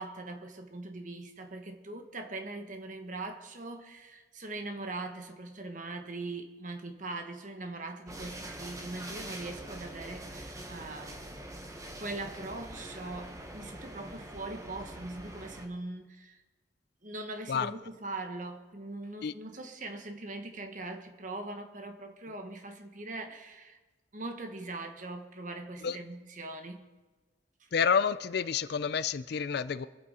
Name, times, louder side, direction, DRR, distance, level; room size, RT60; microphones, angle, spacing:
voice 1, 0.0-11.2 12.0-16.4 17.0-23.8 24.1-26.9, right 2 dB, 40° right, 6 dB, 1.2 m, -41 dB
sound 1, 8.1-15.7, right 1 dB, 15° right, 1.1 m, -44 dB
voice 2, 27.7-29.9, left 6 dB, 55° left, 15 dB, 0.4 m, -29 dB
24.5 x 8.6 x 4.2 m, 1.3 s
head